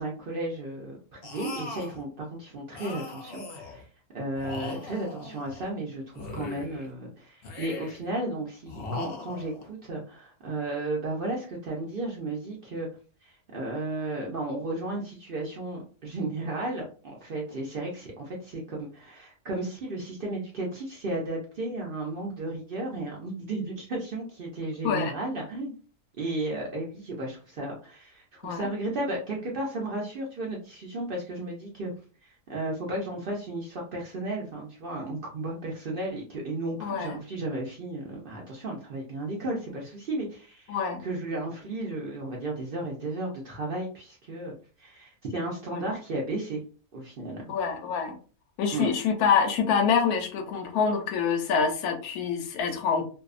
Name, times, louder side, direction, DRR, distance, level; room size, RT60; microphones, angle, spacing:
voice 1, 0.0-3.9 4.1-12.9 13.2-25.7 26.2-31.9 32.2-46.6 46.9-47.4 48.7-48.9, right 2 dB, 65° right, -2 dB, 0.5 m, -34 dB
sound 1, 1.2-2.0 2.7-3.8 4.3-5.7 6.1-6.9 7.4-8.1 8.7-9.7, left 3 dB, 60° left, 0.6 m, -39 dB
voice 2, 36.8-37.1 40.7-41.0 45.7-45.8 47.5-48.2 48.6-53.0, left 6 dB, 80° left, 5 dB, 1.1 m, -26 dB
2.6 x 2.2 x 2.4 m, 0.38 s
omnidirectional pair, 1.6 m